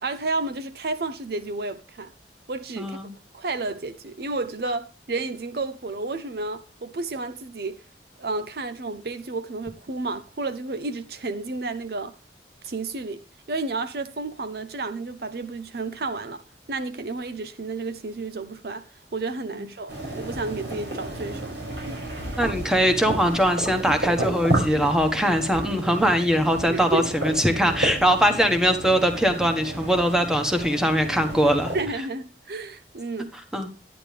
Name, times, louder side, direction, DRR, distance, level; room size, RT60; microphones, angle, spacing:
voice 1, 0.0-2.1 2.5-3.0 3.3-7.8 8.2-12.1 12.6-16.4 16.7-18.8 19.1-21.6 21.9-22.0 26.7-27.1 31.7-33.3, right 3 dB, 60° right, 0.6 m, -31 dB
voice 2, 2.8-3.1 19.5-19.6 22.4-31.7 33.5-33.7, equal, 5° right, 1.4 m, -21 dB
sound 1, 19.9-31.8, right 1 dB, 85° right, 5.8 m, -31 dB
11.0 x 9.9 x 3.3 m
head